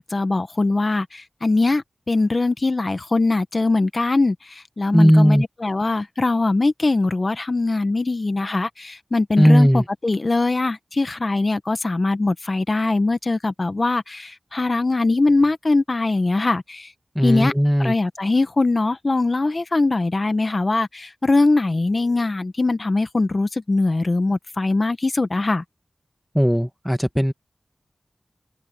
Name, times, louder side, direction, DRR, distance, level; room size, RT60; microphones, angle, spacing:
voice 1, 0.0-16.9 17.2-17.5 17.8-25.6, left 3 dB, 50° left, 1.2 m, -21 dB
voice 2, 4.9-5.4 9.4-9.8 17.1-17.9 26.3-27.3, equal, ahead, 1.6 m, -16 dB
wide cardioid pair, 55°, 0 cm